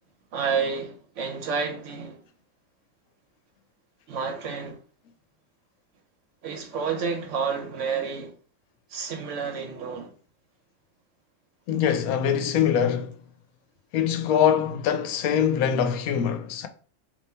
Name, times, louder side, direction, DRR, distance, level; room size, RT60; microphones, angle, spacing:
voice 1, 0.3-2.2 4.1-4.8 6.4-8.3 8.9-10.1, right 5 dB, 60° right, 1.1 m, -30 dB
voice 2, 11.7-13.1 13.9-16.7, left 8 dB, 80° left, 1.1 m, -23 dB
3.6 x 2.6 x 4.1 m
omnidirectional pair, 1.5 m